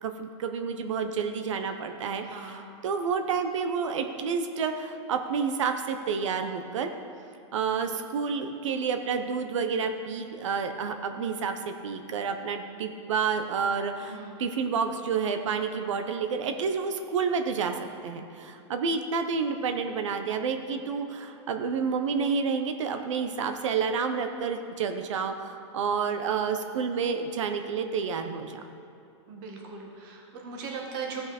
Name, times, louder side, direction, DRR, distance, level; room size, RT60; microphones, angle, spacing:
voice 1, 0.0-6.9 7.5-17.7 18.0-28.6, right 5 dB, 75° right, 7 dB, 0.8 m, -29 dB
voice 2, 2.3-2.6 14.0-14.4 29.3-31.2, right 5 dB, 45° right, 0 dB, 1.8 m, -39 dB
15.5 x 5.7 x 4.3 m, 2.8 s
supercardioid pair, 150°, 16 cm